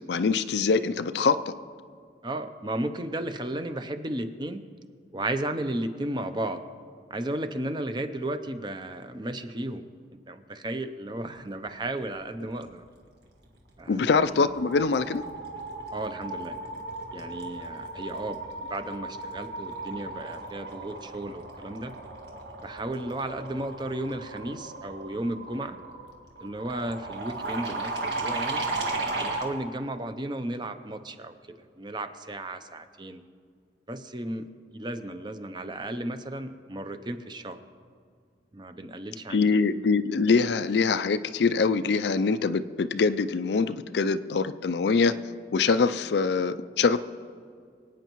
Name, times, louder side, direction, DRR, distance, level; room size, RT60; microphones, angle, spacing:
voice 1, 0.1-1.5 13.9-15.2 39.3-45.1 45.5-47.0, left 4 dB, 75° left, 12 dB, 0.4 m, -24 dB
voice 2, 2.2-4.6 5.1-6.6 7.1-12.8 13.8-14.1 15.9-16.6 17.1-18.4 18.7-21.9 22.6-25.8 26.4-28.6 29.2-33.2 33.9-34.5 34.7-37.6 38.5-39.4, right 1 dB, 25° right, 8 dB, 0.6 m, -34 dB
sound 1, 13.7-14.0 14.3-29.5, right 2 dB, 75° right, 1.8 m, -36 dB
25.5 x 9.1 x 3.1 m, 2.1 s
head